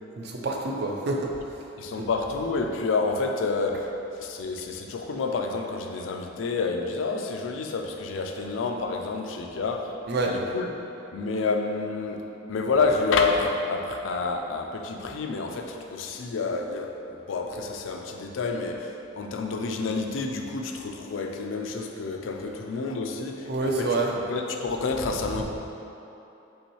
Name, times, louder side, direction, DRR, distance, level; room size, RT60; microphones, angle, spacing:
voice 1, 0.2-1.3 2.0-2.1 10.1-10.3 23.4-24.1, right 3 dB, 60° right, 0 dB, 0.5 m, -27 dB
voice 2, 1.8-9.9 10.2-10.7 11.1-24.0 24.3-25.4, left 4 dB, 90° left, 3 dB, 0.4 m, -29 dB
5.4 x 3.1 x 3.1 m, 2.9 s
head